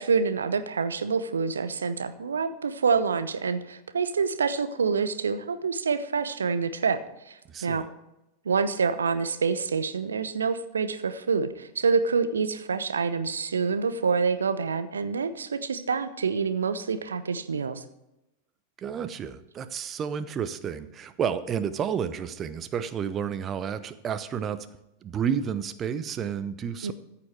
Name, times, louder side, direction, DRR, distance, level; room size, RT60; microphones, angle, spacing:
voice 1, 0.0-7.0 7.3-7.9 8.4-17.8 26.8-26.9, right 5 dB, 70° right, 11 dB, 0.8 m, -27 dB
voice 2, 7.5-7.8 18.8-24.7 25.0-26.9, right 7 dB, 25° right, 12 dB, 0.8 m, -31 dB
14.0 x 7.1 x 4.7 m, 0.91 s
figure-of-eight pair, 90°, 0 cm